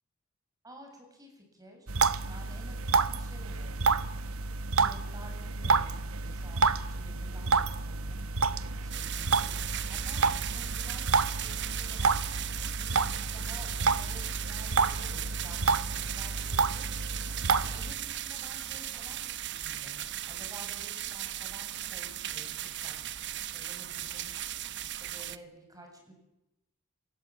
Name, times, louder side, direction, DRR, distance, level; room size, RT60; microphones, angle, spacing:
voice 1, 0.6-1.9 2.3-3.8 4.7-9.5 9.9-12.1 12.7-16.8 17.2-23.1 23.5-24.4 24.8-26.1, right 1 dB, 20° right, 2 dB, 7.8 m, -52 dB
sound 1, 1.9-17.9, right 4 dB, 80° right, 1.1 m, -29 dB
sound 2, 8.9-25.4, right 11 dB, 55° right, 1.0 m, -37 dB
27.5 x 17.5 x 8.8 m, 0.92 s
head